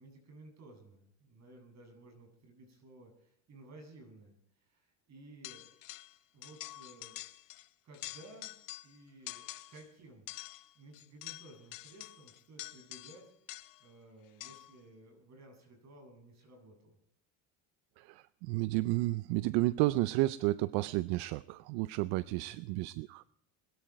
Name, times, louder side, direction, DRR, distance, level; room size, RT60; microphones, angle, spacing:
voice 1, 0.0-5.7 6.3-7.2 7.8-8.5 8.8-10.3 10.7-16.9 22.3-22.6, right 2 dB, 45° right, 3 dB, 7.6 m, -56 dB
sound 1, 5.4-6.2 6.4-7.7 7.9-9.0 9.3-9.9 10.3-13.9 14.4-14.8, left 17 dB, 60° left, 0.9 m, -47 dB
voice 2, 18.0-23.2, right 18 dB, 75° right, 17 dB, 0.6 m, -32 dB
21.0 x 13.0 x 4.7 m, 0.74 s
supercardioid pair, 105°, 38 cm